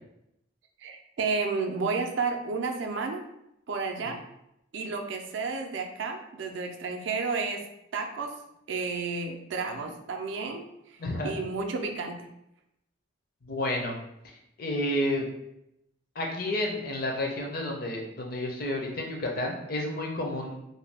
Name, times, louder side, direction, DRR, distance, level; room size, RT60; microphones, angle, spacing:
voice 1, 0.8-3.2 3.7-4.2 4.7-7.6 7.9-8.3 8.7-10.7 11.2-12.3, right 4 dB, 65° right, 4 dB, 0.4 m, -31 dB
voice 2, 11.0-11.3 13.4-13.9 14.6-15.2 16.2-20.6, left 1 dB, 45° left, 1 dB, 0.5 m, -30 dB
2.6 x 2.2 x 3.3 m, 0.81 s
head